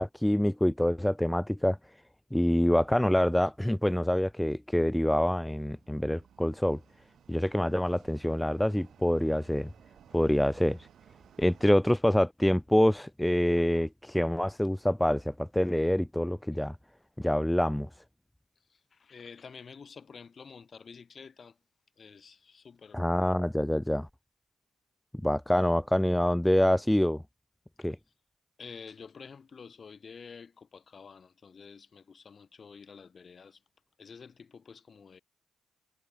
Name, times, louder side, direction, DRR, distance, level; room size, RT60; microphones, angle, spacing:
voice 1, 0.0-1.8 2.3-6.8 7.3-9.7 10.1-10.8 11.4-16.8 17.2-17.9 22.9-24.1 25.2-27.2 27.8-28.0, left 1 dB, 5° left, 0.5 m, -26 dB
sound 1, 5.0-11.8, right 9 dB, 60° right, 7.0 m, -59 dB
voice 2, 18.7-21.6 22.0-23.0 27.8-28.0 28.6-33.6 34.0-35.2, left 5 dB, 40° left, 2.1 m, -49 dB
cardioid pair, 90°, 0 cm